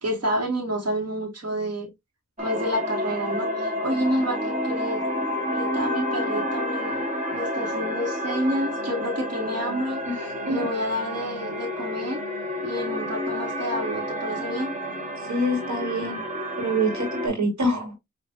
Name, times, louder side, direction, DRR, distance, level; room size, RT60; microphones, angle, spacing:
voice 1, 0.0-1.9 2.4-5.0 5.5-7.0 7.3-10.0 10.5-12.2 12.6-14.7, equal, 55° right, 2.0 m, -29 dB
sound 1, 2.4-17.3, left 1 dB, 25° right, 1.5 m, -30 dB
voice 2, 10.0-10.6 15.3-16.2 16.6-18.0, right 1 dB, 70° right, 2.2 m, -26 dB
5.9 x 3.2 x 2.7 m
wide cardioid pair, 70°, 30 cm